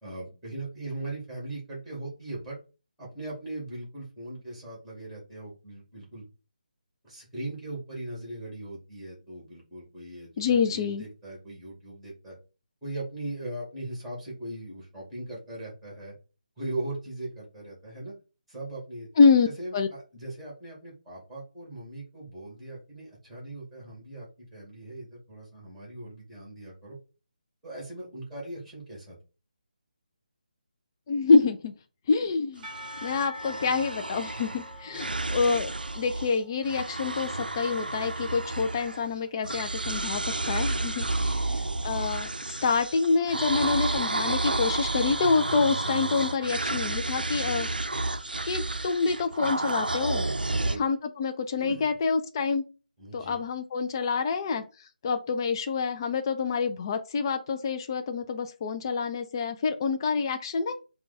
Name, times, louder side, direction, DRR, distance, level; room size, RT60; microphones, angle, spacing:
voice 1, 0.0-2.6 3.0-6.2 7.0-12.4 12.8-16.1 16.6-18.1 18.5-19.1 19.4-27.0 27.6-29.2 34.9-35.0 41.0-41.3 41.6-41.7 50.4-50.8 51.6-52.0 53.0-53.4, right 2 dB, ahead, -4 dB, 2.4 m, -39 dB
voice 2, 10.4-11.0 19.2-19.5 19.7-19.9 31.1-31.7 32.1-32.7 33.0-35.7 36.0-47.7 48.4-50.2 50.8-52.6 53.1-54.6 55.0-60.7, left 4 dB, 30° left, 7 dB, 0.4 m, -26 dB
Percussion / Church bell, 32.6-37.0, left 1 dB, 20° right, 0.9 m, -44 dB
sound 1, 32.6-36.4 36.6-39.2 39.4-50.8, right 2 dB, 75° right, 0.4 m, -31 dB
4.4 x 2.3 x 4.2 m, 0.32 s
figure-of-eight pair, 150°, 5 cm